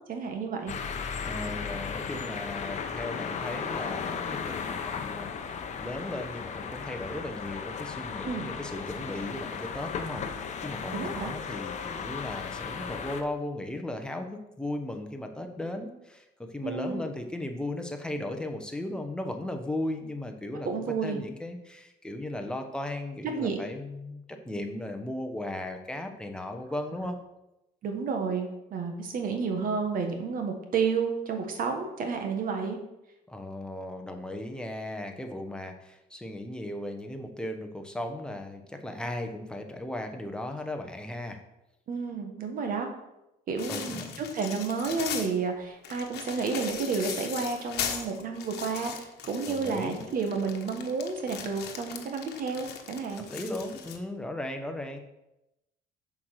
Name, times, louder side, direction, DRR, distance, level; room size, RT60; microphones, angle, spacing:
voice 1, 0.1-0.7 8.2-8.5 10.9-11.3 16.6-17.0 20.6-21.2 23.4-23.6 27.8-32.8 41.9-42.9 43.5-48.9 49.3-53.3, right 5 dB, 55° right, 4 dB, 1.5 m, -31 dB
sound 1, 0.7-13.2, left 6 dB, 45° left, 0.9 m, -35 dB
voice 2, 1.2-16.2 16.5-27.2 33.3-41.4 43.7-44.3 49.4-50.1 53.3-55.0, left 1 dB, 5° left, 4 dB, 1.1 m, -36 dB
sound 2, 43.6-45.3 45.8-54.0, left 8 dB, 75° left, 1.1 m, -39 dB
7.0 x 4.9 x 6.5 m, 0.91 s
cardioid pair, 110°, 17 cm